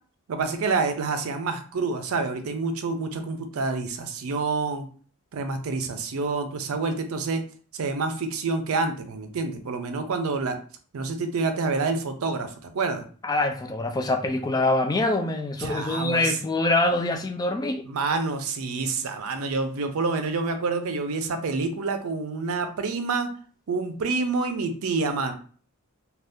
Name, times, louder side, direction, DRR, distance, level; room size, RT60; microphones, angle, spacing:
voice 1, 0.3-4.9 5.3-7.4 7.7-10.6 10.9-13.0 15.6-16.4 17.9-23.3 23.7-25.3, right 4 dB, 70° right, 7 dB, 0.5 m, -27 dB
voice 2, 13.2-17.8, left 2 dB, 20° left, 5 dB, 0.3 m, -24 dB
2.6 x 2.3 x 3.4 m, 0.43 s
head